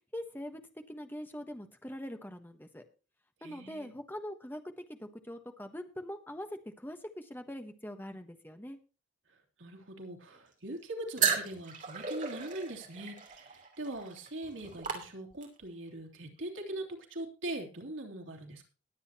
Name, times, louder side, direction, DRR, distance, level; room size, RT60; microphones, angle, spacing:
voice 1, 0.1-0.6 0.9-2.8 3.4-8.8, equal, 10° left, 6 dB, 1.2 m, -43 dB
voice 2, 3.4-3.9 9.6-18.6, right 1 dB, 85° right, 1 dB, 2.9 m, -41 dB
sound 1, 11.2-15.7, right 6 dB, 40° right, 2.8 m, -35 dB
20.0 x 8.1 x 2.9 m, 0.36 s
head